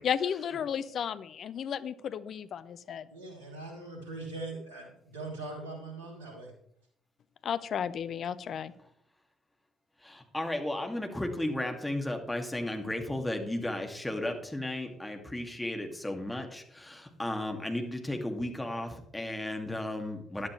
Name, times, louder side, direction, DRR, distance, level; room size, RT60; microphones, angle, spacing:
voice 1, 0.0-3.1 7.4-8.7, left 8 dB, 50° left, 15 dB, 0.6 m, -33 dB
voice 2, 3.1-6.5, right 2 dB, 75° right, 0 dB, 3.1 m, -41 dB
voice 3, 10.0-20.5, left 1 dB, 10° left, 3 dB, 2.2 m, -34 dB
14.0 x 11.0 x 3.2 m, 0.71 s
figure-of-eight pair, 45°, 0 cm